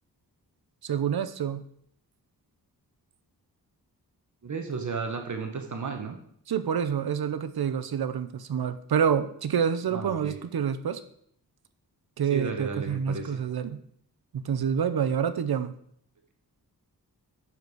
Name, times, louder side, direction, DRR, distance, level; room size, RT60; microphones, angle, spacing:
voice 1, 0.8-1.7 6.5-11.0 12.2-13.8 14.3-15.7, right 7 dB, 70° right, 11 dB, 0.9 m, -27 dB
voice 2, 4.4-6.2 9.9-10.4 12.3-13.4, right 4 dB, 50° right, 4 dB, 1.2 m, -33 dB
8.0 x 6.9 x 6.2 m, 0.66 s
wide cardioid pair, 150°, 38 cm